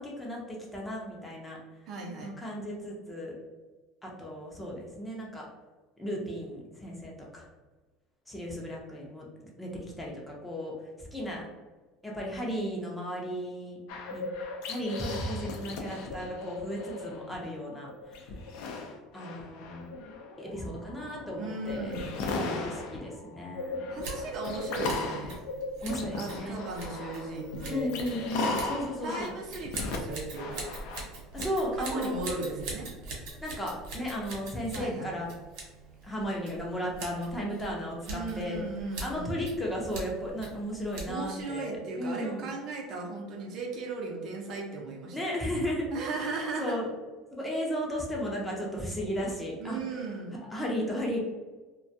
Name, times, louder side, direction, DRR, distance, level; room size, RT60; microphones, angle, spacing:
voice 1, 0.0-1.6 2.2-3.4 4.0-5.5 6.0-7.5 8.3-9.3 9.6-9.7 10.0-11.5 12.0-13.8 14.1-14.3 14.6-18.4 19.1-19.8 20.4-23.9 25.8-26.6 27.7-29.3 31.3-32.2 33.4-35.3 36.0-38.6 39.0-42.5 45.1-45.9 46.6-46.9 47.3-49.8 50.4-51.2, equal, 10° left, -2 dB, 0.6 m, -35 dB
voice 2, 1.9-2.3 21.4-22.1 23.9-25.3 26.1-27.9 29.0-30.8 31.4-31.5 31.9-32.9 34.7-35.1 38.1-39.3 41.1-45.2 45.9-46.8 49.6-50.4, right 3 dB, 50° right, 0 dB, 0.6 m, -36 dB
sound 1, 13.9-17.4 17.8-31.4, left 3 dB, 75° left, 0.4 m, -37 dB
Scissors, 23.9-41.4, right 3 dB, 75° right, 0.8 m, -43 dB
2.3 x 2.2 x 2.7 m, 1.3 s
supercardioid pair, 125°, 0 cm